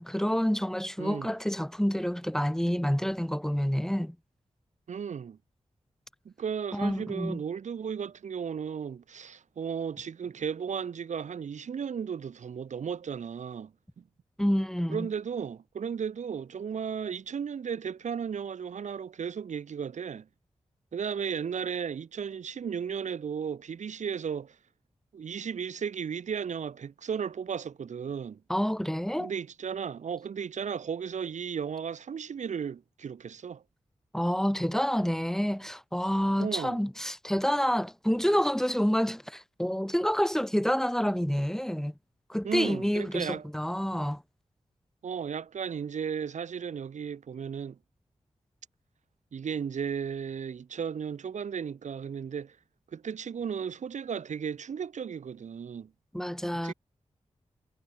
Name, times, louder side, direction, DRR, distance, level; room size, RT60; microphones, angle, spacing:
voice 1, 0.0-4.2 6.7-7.4 14.4-15.1 28.5-29.3 34.1-41.9 42.3-44.2 56.1-56.7, equal, 5° left, 1.1 m, -28 dB
voice 2, 1.0-1.3 4.9-5.4 6.3-14.0 14.9-20.3 20.9-24.6 25.1-28.4 29.2-33.6 36.4-36.8 42.4-43.5 45.0-47.8 49.3-52.6 52.9-55.9 56.6-56.7, right 7 dB, 85° right, 2.1 m, -35 dB
cardioid pair, 40°, 12 cm